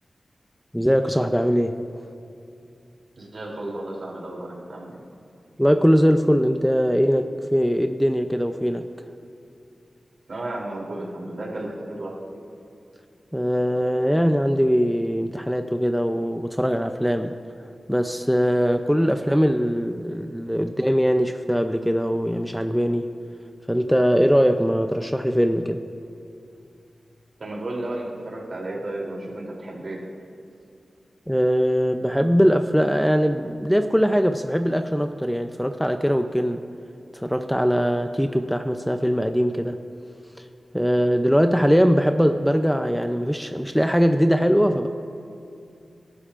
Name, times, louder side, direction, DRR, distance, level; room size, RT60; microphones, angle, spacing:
voice 1, 0.7-1.9 5.6-8.9 13.3-17.4 17.9-23.1 23.7-25.8 31.3-36.6 37.1-39.8 40.7-44.9, equal, ahead, 7 dB, 0.5 m, -21 dB
voice 2, 3.2-5.0 10.3-12.4 27.4-30.0, right 1 dB, 60° right, -3 dB, 3.1 m, -33 dB
24.5 x 11.5 x 2.5 m, 2.5 s
wide cardioid pair, 85°, 0 cm